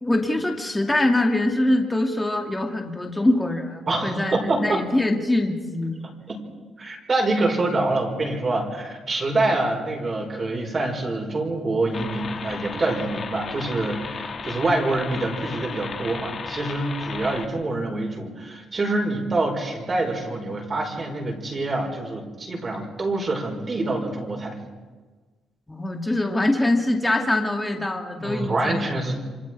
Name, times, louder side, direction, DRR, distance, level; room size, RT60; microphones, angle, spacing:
voice 1, 0.0-6.0 25.7-28.9, left 1 dB, 15° left, 2 dB, 2.4 m, -23 dB
voice 2, 3.9-4.8 6.3-6.4 6.8-24.6 28.2-29.2, right 2 dB, 35° right, 0 dB, 5.3 m, -26 dB
sound 1, 11.9-17.5, left 5 dB, 50° left, 1.8 m, -35 dB
28.5 x 24.5 x 4.7 m, 1.4 s
cardioid pair, 90°, 0 cm